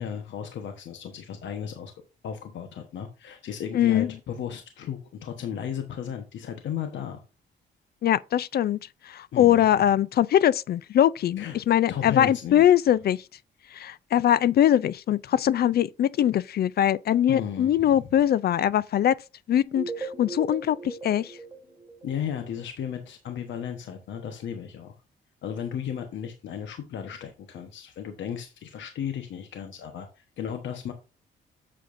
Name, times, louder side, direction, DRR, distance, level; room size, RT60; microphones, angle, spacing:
voice 1, 0.0-1.9 2.2-7.2 9.3-9.7 11.4-11.6 11.9-12.6 17.3-18.1 22.0-24.9 25.4-30.9, left 8 dB, 70° left, 1.1 m, -35 dB
voice 2, 3.7-4.1 8.0-8.8 9.0-13.2 13.7-19.1 19.5-21.4, left 11 dB, 55° left, 0.4 m, -22 dB
sound 1, 19.6-22.6, right 3 dB, 15° right, 3.0 m, -38 dB
8.4 x 7.6 x 2.6 m
cardioid pair, 90°, 20 cm